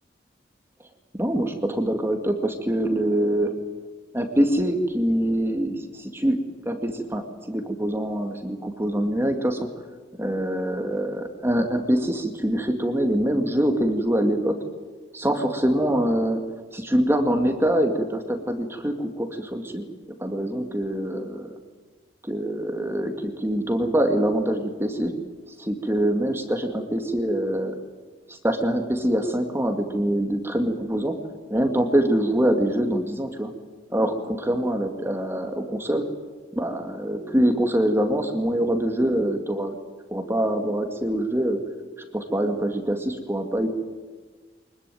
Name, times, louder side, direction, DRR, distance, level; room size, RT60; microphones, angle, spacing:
voice 1, 1.1-3.6 4.1-6.4 6.6-9.7 10.2-14.6 15.1-16.4 16.7-19.8 20.2-21.5 22.3-25.1 25.6-27.8 28.3-31.2 31.5-33.5 33.9-36.1 36.5-39.8 40.1-41.6 42.1-43.7, right 1 dB, 15° right, 5 dB, 2.1 m, -24 dB
24.5 x 21.0 x 9.2 m, 1.4 s
head